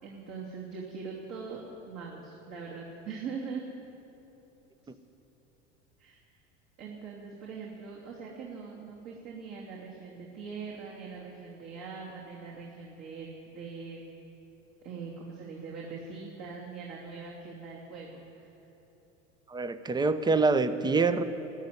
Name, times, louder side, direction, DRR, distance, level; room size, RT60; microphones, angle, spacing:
voice 1, 0.0-3.7 6.0-6.2 6.8-14.1 14.8-18.5, right 5 dB, 45° right, -4 dB, 2.7 m, -42 dB
voice 2, 19.5-21.2, right 4 dB, 10° right, 12 dB, 0.7 m, -25 dB
14.0 x 8.7 x 9.7 m, 3.0 s
hypercardioid pair, 80°, 36 cm